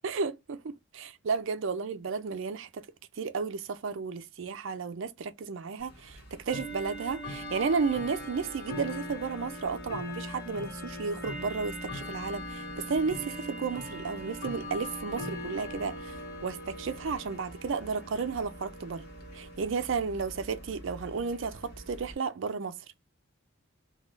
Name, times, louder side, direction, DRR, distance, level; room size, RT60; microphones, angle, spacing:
voice 1, 0.0-2.9 3.2-19.1 19.3-22.8, right 5 dB, 60° right, 0.4 m, -33 dB
Bell / Tick-tock, 5.8-22.1, equal, 45° left, 1.1 m, -41 dB
3.0 x 2.3 x 3.8 m
head